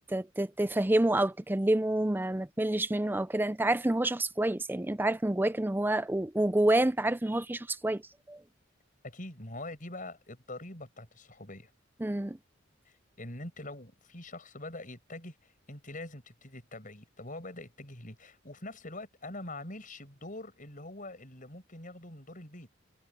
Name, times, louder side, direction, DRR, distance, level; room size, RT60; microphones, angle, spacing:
voice 1, 0.0-8.0 8.3-8.4 12.0-12.4, right 1 dB, 10° right, 0.5 m, -28 dB
voice 2, 9.0-11.7 12.9-22.7, left 2 dB, 40° left, 7.5 m, -44 dB
head